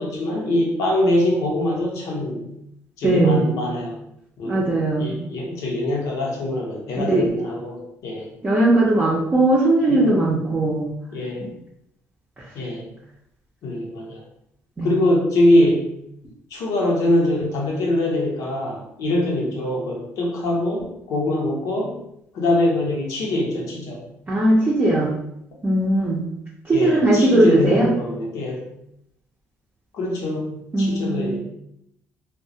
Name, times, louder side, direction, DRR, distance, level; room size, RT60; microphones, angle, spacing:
voice 1, 0.0-2.5 3.0-3.9 4.4-4.7 5.0-8.3 9.9-10.3 11.1-11.5 12.5-12.8 13.6-14.2 14.8-15.8 16.5-22.0 22.3-24.0 26.7-28.6 29.9-31.4, left 1 dB, 80° left, -2 dB, 0.7 m, -23 dB
voice 2, 3.0-3.4 4.5-5.1 7.0-7.3 8.4-10.9 14.8-14.9 24.3-25.1 25.6-26.2 26.7-27.9 30.7-31.4, right 1 dB, 30° right, -6 dB, 0.5 m, -18 dB
2.2 x 2.0 x 2.7 m, 0.77 s
supercardioid pair, 75°, 6 cm